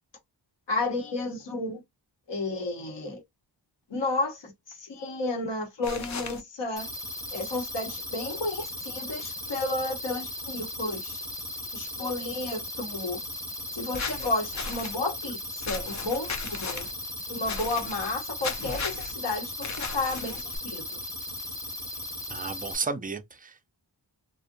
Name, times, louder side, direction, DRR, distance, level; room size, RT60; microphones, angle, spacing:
voice 1, 0.7-1.8 2.3-3.2 3.9-6.9 7.3-11.2 11.7-13.2 13.7-16.9 17.3-21.0, left 2 dB, 70° left, 0.9 m, -32 dB
sound 1, 5.8-6.4 13.9-15.0 15.6-16.9 17.4-18.1 18.4-19.1 19.6-20.6, left 5 dB, 40° left, 0.4 m, -36 dB
sound 2, 6.8-22.8, left 1 dB, 10° left, 0.7 m, -37 dB
voice 2, 22.3-23.7, right 4 dB, 20° right, 0.3 m, -33 dB
2.5 x 2.1 x 2.5 m
wide cardioid pair, 105°, 44 cm